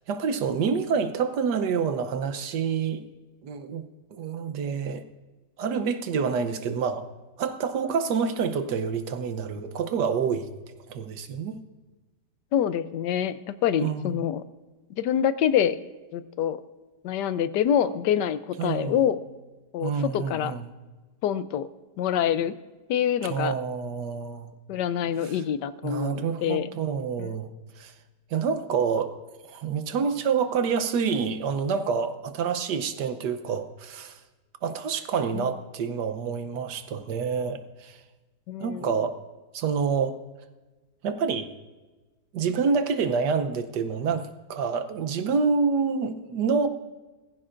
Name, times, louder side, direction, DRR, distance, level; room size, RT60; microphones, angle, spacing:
voice 1, 0.1-3.0 3.4-3.8 4.1-5.0 5.6-7.0 7.4-10.5 10.9-11.6 13.8-14.1 18.6-19.0 19.8-20.7 23.2-24.5 25.2-25.4 25.8-27.9 28.3-29.1 29.4-34.2 34.6-38.0 38.6-39.2 39.5-40.1 41.0-41.5 42.3-46.7, right 6 dB, 75° right, 9 dB, 1.5 m, -27 dB
voice 2, 12.5-14.4 15.0-15.8 16.1-16.6 17.0-19.2 19.7-20.5 21.2-21.7 22.0-22.5 22.9-23.5 24.7-26.7 27.2-27.3 35.3-35.5 38.5-39.0, left 9 dB, 80° left, 13 dB, 1.3 m, -26 dB
19.5 x 15.5 x 2.5 m, 1.2 s
omnidirectional pair, 1.8 m